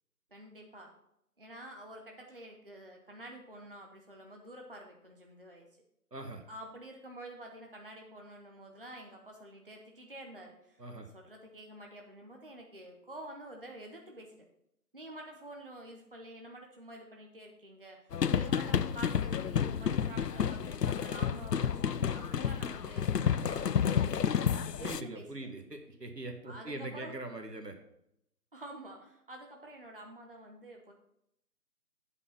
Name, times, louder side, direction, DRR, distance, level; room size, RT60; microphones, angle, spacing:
voice 1, 0.3-0.9 1.4-5.7 6.5-10.8 11.1-14.5 14.9-24.1 24.8-25.3 26.4-27.2 28.5-30.9, right 1 dB, 35° right, 1 dB, 0.9 m, -49 dB
voice 2, 6.1-6.4 10.8-11.1 24.8-27.7, right 2 dB, 85° right, 5 dB, 1.7 m, -42 dB
sound 1, 18.1-25.0, left 7 dB, 85° left, 0.6 m, -30 dB
8.5 x 5.4 x 5.8 m, 0.78 s
figure-of-eight pair, 165°, 47 cm